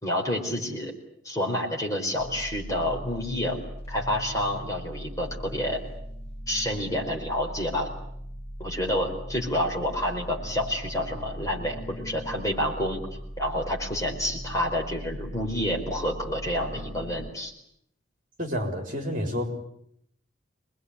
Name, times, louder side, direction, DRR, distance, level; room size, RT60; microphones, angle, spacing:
voice 1, 0.0-0.9 1.2-3.6 3.9-5.8 6.5-7.9 8.6-13.0 13.4-17.5, left 1 dB, 15° left, 0 dB, 4.5 m, -29 dB
sound 1, 2.2-17.3, equal, 30° left, 2.2 m, -39 dB
voice 2, 18.4-19.5, equal, 40° right, 4 dB, 4.1 m, -29 dB
26.5 x 21.0 x 9.8 m, 0.73 s
head